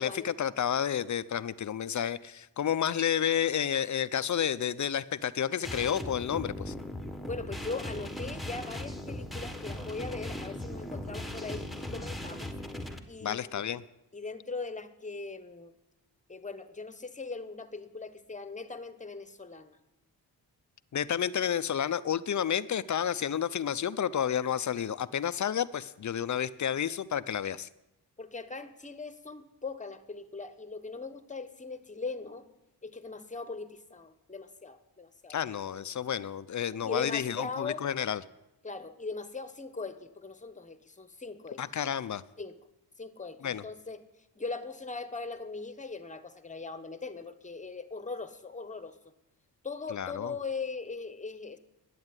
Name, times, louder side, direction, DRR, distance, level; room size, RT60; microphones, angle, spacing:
voice 1, 0.0-6.7 13.2-13.8 20.9-27.7 35.3-38.2 41.6-42.2 43.4-43.6 49.9-50.3, left 9 dB, 45° left, 15 dB, 0.6 m, -30 dB
sound 1, 5.6-13.0, left 1 dB, ahead, 1.4 m, -38 dB
voice 2, 7.3-12.5 13.1-13.6 14.1-15.7 16.3-19.8 28.2-32.5 32.8-35.4 35.7-35.8 36.8-37.9 38.6-41.6 42.4-42.6 43.0-44.0 44.4-49.0 49.6-51.6, left 4 dB, 20° left, 11 dB, 1.2 m, -40 dB
11.0 x 8.6 x 9.7 m, 0.93 s
cardioid pair, 75°, 41 cm